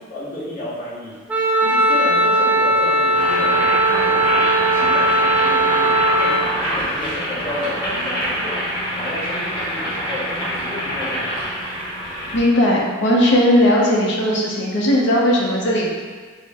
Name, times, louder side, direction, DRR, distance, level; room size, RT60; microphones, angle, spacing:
voice 1, 0.1-1.2 1.6-8.7 8.9-11.4, left 1 dB, 45° left, -11 dB, 1.4 m, -32 dB
Wind instrument woodwind instrument, 1.3-6.5, right 1 dB, 10° right, 0.3 m, -18 dB
Boiling, 3.0-12.5, equal, 25° left, 1.3 m, -25 dB
voice 2, 12.3-15.9, equal, 65° left, -3 dB, 0.7 m, -17 dB
4.4 x 2.1 x 3.5 m, 1.5 s
head